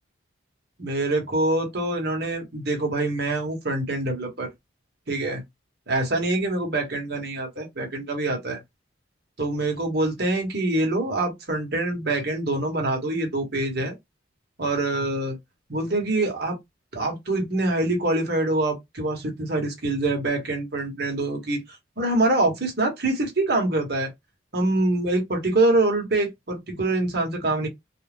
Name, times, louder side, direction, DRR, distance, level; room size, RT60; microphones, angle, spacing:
voice 1, 0.8-4.5 5.1-5.4 5.9-8.6 9.4-13.9 14.6-15.4 15.7-16.6 16.9-24.1 24.5-27.7, right 2 dB, 55° right, 1.1 m, -25 dB
2.4 x 2.2 x 3.3 m
head